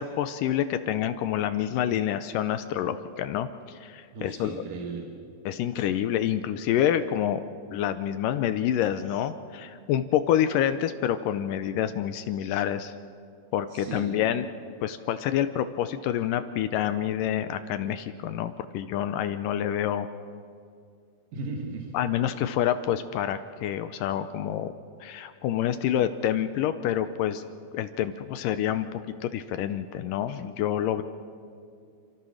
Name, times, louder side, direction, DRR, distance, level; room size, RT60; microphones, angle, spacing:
voice 1, 0.0-4.6 5.5-7.4 7.7-12.9 13.5-14.5 14.8-20.1 21.9-24.7 25.0-27.4 27.7-31.0, left 10 dB, 80° left, 10 dB, 2.0 m, -27 dB
voice 2, 4.1-5.1 13.7-14.2 21.3-21.9, right 4 dB, 65° right, 1 dB, 3.1 m, -36 dB
29.5 x 13.5 x 6.4 m, 2.3 s
omnidirectional pair, 4.4 m